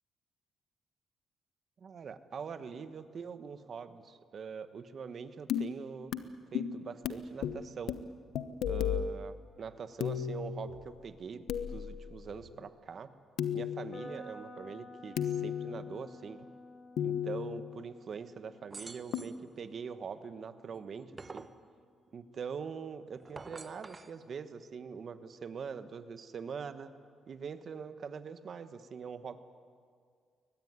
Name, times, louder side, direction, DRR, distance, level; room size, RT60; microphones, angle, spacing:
voice 1, 1.8-6.1 6.5-8.0 8.7-13.1 13.5-16.5 17.0-21.5 22.1-26.9 27.3-29.4, right 6 dB, 45° right, 11 dB, 1.3 m, -43 dB
sound 1, 5.5-5.7 6.1-6.2 6.5-7.2 7.4-7.6 7.9-8.0 8.3-9.1 10.0-11.0 11.5-12.5 13.4-14.1 15.2-16.0 17.0-17.8 19.1-19.2, left 9 dB, 75° left, 1.1 m, -34 dB
sound 2, 13.9-21.8, left 1 dB, 45° left, 4.1 m, -52 dB
sound 3, 18.7-19.4 20.7-21.6 23.2-24.1, right 3 dB, 25° right, 0.9 m, -47 dB
22.5 x 19.5 x 9.6 m, 2.1 s
cardioid pair, 135°, 0 cm